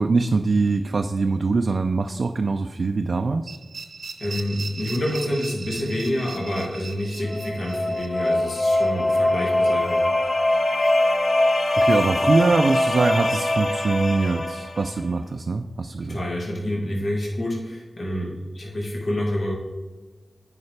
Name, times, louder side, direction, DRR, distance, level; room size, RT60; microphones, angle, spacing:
voice 1, 0.0-3.5 11.8-16.2, right 3 dB, 70° right, 5 dB, 0.3 m, -23 dB
sound 1, 3.5-10.3, right 4 dB, 90° right, 0.8 m, -39 dB
voice 2, 4.2-10.0 16.0-19.6, left 1 dB, 70° left, -3 dB, 1.7 m, -28 dB
sound 2, 7.3-15.0, left 1 dB, 50° left, 1.0 m, -22 dB
9.5 x 4.8 x 3.3 m, 1.3 s
cardioid pair, 40°, 0 cm